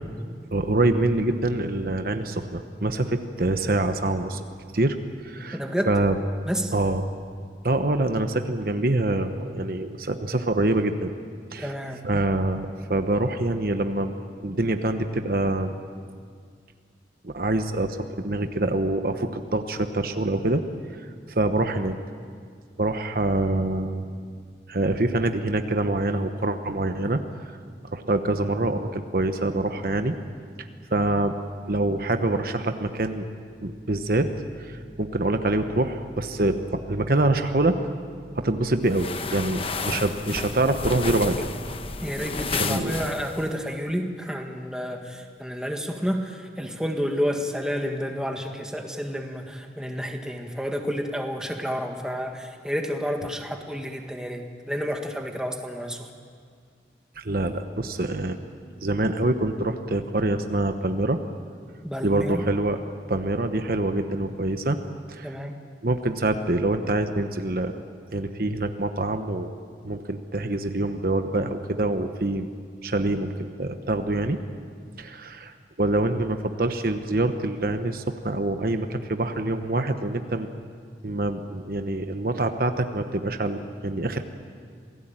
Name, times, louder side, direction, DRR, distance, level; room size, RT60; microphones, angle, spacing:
voice 1, 0.5-4.4 4.7-5.0 5.2-5.6 5.9-6.1 6.7-7.0 7.6-11.1 11.5-11.7 12.0-14.1 14.4-15.7 17.2-20.6 20.9-21.0 21.3-21.9 22.8-24.1 24.7-27.5 27.9-30.1 30.6-31.4 31.7-33.3 33.6-34.3 34.6-37.8 38.3-41.5 42.5-43.0 57.2-58.4 58.8-61.2 62.0-62.8 63.1-64.8 65.1-65.3 65.8-67.8 68.1-69.5 69.8-72.5 72.8-74.4 75.0-80.5 81.0-84.2, right 2 dB, 55° right, 7 dB, 1.1 m, -25 dB
voice 2, 5.5-5.9 6.5-6.7 11.6-12.0 42.0-56.1 61.8-62.5 65.2-65.6, equal, 5° right, 3 dB, 1.8 m, -30 dB
sound 1, 38.9-43.5, left 4 dB, 30° left, 1.1 m, -32 dB
27.5 x 18.0 x 9.0 m, 2.1 s
head